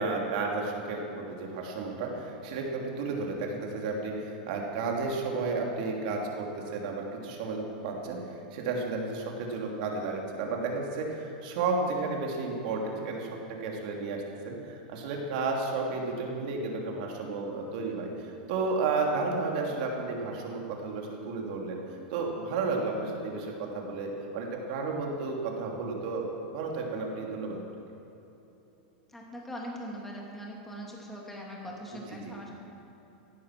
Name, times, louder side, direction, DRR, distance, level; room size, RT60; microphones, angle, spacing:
voice 1, 0.0-13.3 13.6-21.8 22.1-27.6 32.1-32.3, right 3 dB, 60° right, 0 dB, 3.0 m, -32 dB
voice 2, 29.1-32.5, equal, 5° left, -3 dB, 2.7 m, -41 dB
16.5 x 11.0 x 6.1 m, 3.0 s
supercardioid pair, 150°, 5 cm